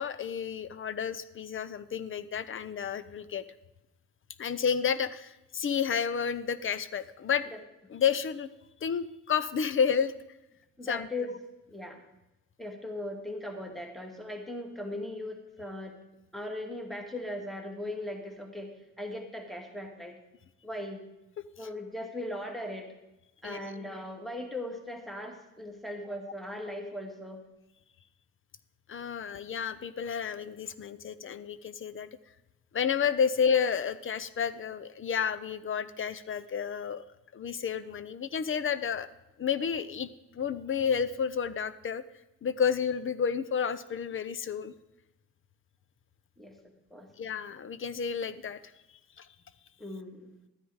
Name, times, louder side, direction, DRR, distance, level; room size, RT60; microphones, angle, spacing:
voice 1, 0.0-3.4 4.4-7.4 7.9-8.5 8.8-10.1 10.8-11.1 23.4-23.6 28.9-32.1 32.7-37.0 37.3-39.1 39.4-40.1 40.3-42.0 42.4-44.7 47.2-48.6 49.2-49.3, left 7 dB, 45° left, 15 dB, 0.7 m, -30 dB
voice 2, 10.8-11.4 11.7-12.0 12.6-16.0 16.3-20.2 20.6-21.0 21.6-22.9 23.4-27.4 46.4-47.1 49.8-50.3, left 1 dB, ahead, 3 dB, 2.0 m, -39 dB
13.0 x 9.7 x 4.8 m, 0.94 s
cardioid pair, 90°, 30 cm